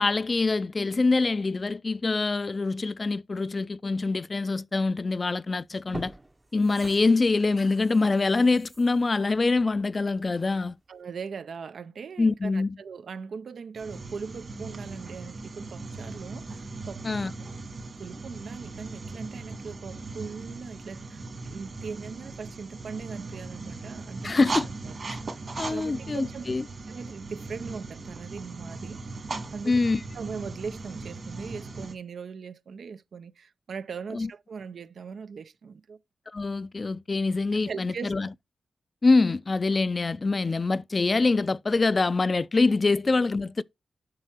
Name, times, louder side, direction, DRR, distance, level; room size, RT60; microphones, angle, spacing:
voice 1, 0.0-6.1 6.5-10.8 12.2-12.8 17.0-17.3 24.2-24.7 25.1-25.2 25.6-26.6 29.7-30.0 34.1-34.3 36.3-38.3 39.0-43.6, left 3 dB, 45° left, 0.4 m, -25 dB
sound 1, 5.1-5.3 5.7-10.4 10.8-10.9, right 2 dB, 25° right, 0.6 m, -45 dB
voice 2, 10.9-17.2 18.0-24.5 24.8-25.0 25.7-26.5 26.9-29.0 29.5-29.8 30.1-36.0 37.7-38.3, right 5 dB, 80° right, 0.5 m, -40 dB
sound 2, 13.7-31.9, right 3 dB, 55° right, 2.1 m, -38 dB
7.5 x 5.8 x 4.5 m
cardioid pair, 55°, 0 cm